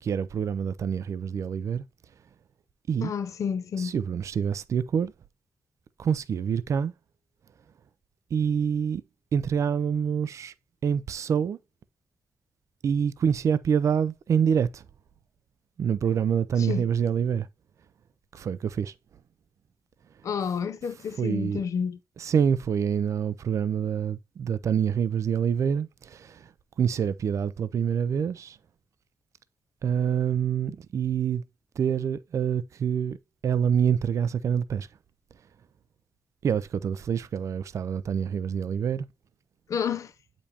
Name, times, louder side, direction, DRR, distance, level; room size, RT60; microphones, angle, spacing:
voice 1, 0.0-1.8 2.9-3.1 3.8-5.1 6.0-6.9 8.3-9.0 9.3-10.5 10.8-11.6 12.8-14.8 15.8-17.5 18.3-18.9 21.2-21.6 22.2-26.5 26.8-28.6 29.8-31.4 31.8-33.2 33.4-34.9 36.4-39.1, right 7 dB, 65° right, 0.4 m, -26 dB
voice 2, 3.0-4.0 16.6-16.9 20.2-22.0 39.7-40.1, left 7 dB, 65° left, 0.6 m, -30 dB
8.4 x 5.2 x 2.8 m
wide cardioid pair, 145°, 6 cm